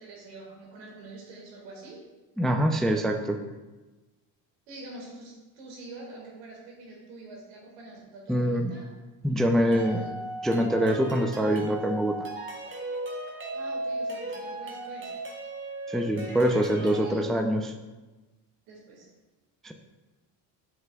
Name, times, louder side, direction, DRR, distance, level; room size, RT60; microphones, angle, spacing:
voice 1, 0.0-2.0 4.7-8.9 9.6-10.1 13.1-15.1 16.9-17.3 18.7-19.1, right 2 dB, 85° right, -2 dB, 1.9 m, -45 dB
voice 2, 2.4-3.4 8.3-8.7 9.2-10.0 10.4-12.2 15.9-17.7 19.6-19.7, equal, ahead, 5 dB, 0.4 m, -24 dB
sound 1, 9.7-17.1, right 1 dB, 25° right, 1.5 m, -36 dB
7.5 x 5.7 x 2.3 m, 1.2 s
supercardioid pair, 70°, 49 cm